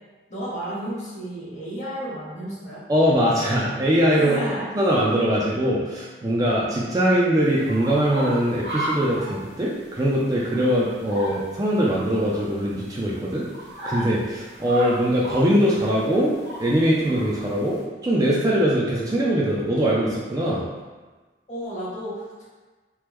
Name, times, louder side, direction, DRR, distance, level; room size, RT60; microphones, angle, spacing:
voice 1, 0.3-2.8 4.1-4.7 21.5-22.4, right 1 dB, 40° left, -7 dB, 1.0 m, -32 dB
voice 2, 2.9-4.4 4.8-13.5 13.8-16.3 16.6-20.7, equal, 20° right, -5 dB, 0.3 m, -22 dB
sound 1, 7.4-17.8, right 1 dB, 90° right, 1.0 m, -36 dB
3.0 x 2.1 x 3.4 m, 1.3 s
head